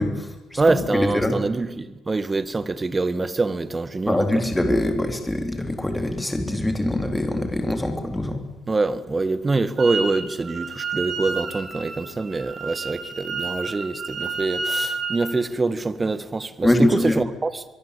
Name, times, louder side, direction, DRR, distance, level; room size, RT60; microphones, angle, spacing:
voice 1, 0.0-0.6 0.9-1.4 4.1-8.4 16.6-17.2, left 1 dB, 10° left, 3.9 m, -23 dB
voice 2, 0.6-4.4 8.7-17.6, right 3 dB, 25° right, 1.9 m, -25 dB
Wind instrument woodwind instrument, 9.8-10.2 10.4-15.3, right 4 dB, 50° right, 7.0 m, -30 dB
23.5 x 23.0 x 8.6 m
cardioid pair, 90°, 0 cm